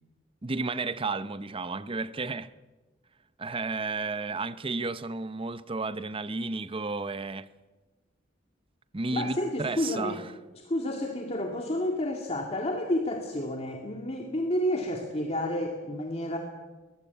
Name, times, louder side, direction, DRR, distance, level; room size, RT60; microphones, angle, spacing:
voice 1, 0.4-2.5 3.4-7.5 8.9-10.3, right 3 dB, 30° right, 0.7 m, -32 dB
voice 2, 9.1-10.2 10.5-16.4, left 1 dB, 35° left, 2.3 m, -30 dB
22.5 x 20.5 x 8.3 m
head